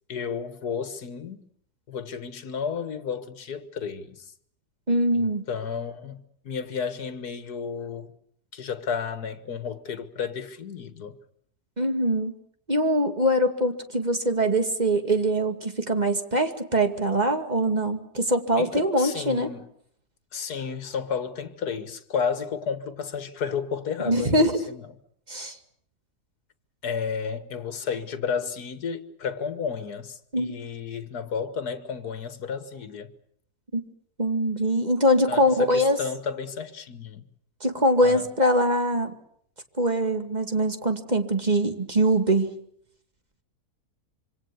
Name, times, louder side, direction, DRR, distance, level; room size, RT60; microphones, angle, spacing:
voice 1, 0.1-1.4 1.9-4.3 5.1-8.1 8.5-11.2 18.6-19.7 20.3-24.8 26.8-33.1 35.3-37.2 38.0-38.3, left 6 dB, 75° left, 2.1 m, -32 dB
voice 2, 4.9-5.4 11.8-12.3 12.7-19.5 24.1-24.6 25.3-25.6 30.3-30.6 33.7-33.8 34.2-36.0 37.6-39.1 39.8-42.5, right 1 dB, 25° right, 2.3 m, -23 dB
26.5 x 25.0 x 7.0 m
omnidirectional pair, 1.7 m